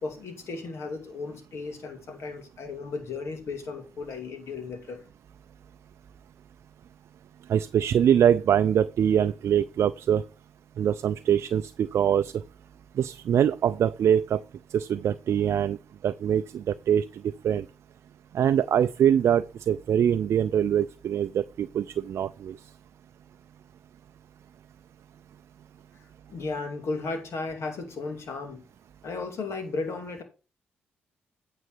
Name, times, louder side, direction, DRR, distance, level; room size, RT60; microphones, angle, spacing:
voice 1, 0.0-5.0 25.9-26.0 26.3-28.6 29.0-30.2, left 3 dB, 65° left, 2.3 m, -35 dB
voice 2, 7.5-10.2 10.8-12.3 13.0-14.4 14.7-15.8 16.0-17.0 17.4-17.6 18.3-22.6, right 9 dB, 65° right, 0.4 m, -23 dB
9.1 x 4.0 x 6.4 m
hypercardioid pair, 45°, 5 cm